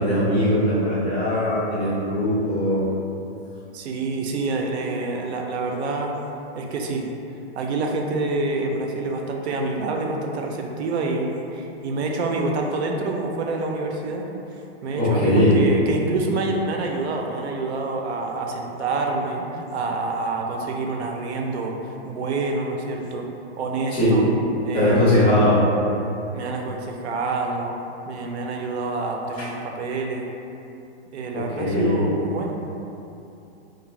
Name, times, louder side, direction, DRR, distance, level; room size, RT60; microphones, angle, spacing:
voice 1, 0.0-2.8 15.0-15.6 23.9-24.2 24.7-25.6 31.3-32.0, left 1 dB, ahead, -22 dB, 0.3 m, -20 dB
voice 2, 3.7-6.1 6.6-7.0 7.6-14.2 14.8-23.3 23.6-24.3 24.6-25.3 26.3-27.7 28.1-30.2 31.1-32.5, right 3 dB, 80° right, 1 dB, 0.5 m, -27 dB
2.5 x 2.1 x 3.1 m, 2.8 s
hypercardioid pair, 165°, 33 cm